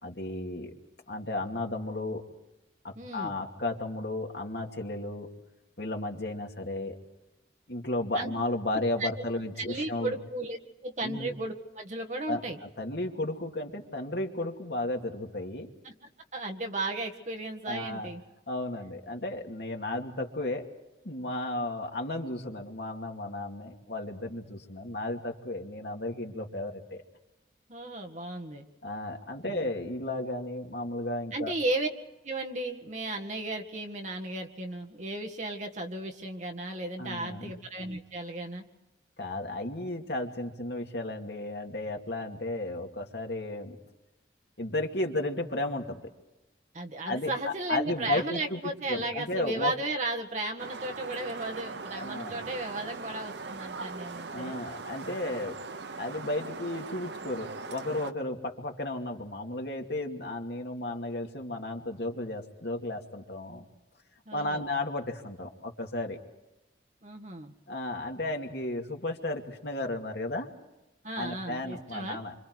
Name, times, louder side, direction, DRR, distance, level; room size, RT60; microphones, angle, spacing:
voice 1, 0.0-0.7 1.1-2.2 2.8-5.3 5.8-7.0 7.7-10.1 11.0-11.3 12.3-15.7 17.7-18.1 18.5-20.7 21.0-27.0 28.8-31.5 37.0-37.5 39.2-43.8 44.6-46.1 47.1-48.6 48.9-49.7 52.0-52.4 54.3-55.6 56.0-63.7 64.3-66.2 67.7-70.5 71.2-72.3, left 2 dB, 70° left, 2 dB, 2.5 m, -34 dB
voice 2, 3.0-3.4 8.1-8.3 9.0-9.1 9.6-12.6 15.8-15.9 16.3-18.2 27.7-28.7 29.4-29.7 31.3-31.9 32.2-38.6 46.7-54.6 64.3-64.7 67.0-67.5 71.0-72.2, right 2 dB, 40° right, 2 dB, 1.9 m, -35 dB
sound 1, 50.6-58.1, right 4 dB, 75° right, 0.9 m, -40 dB
28.0 x 26.0 x 4.7 m, 1.0 s
head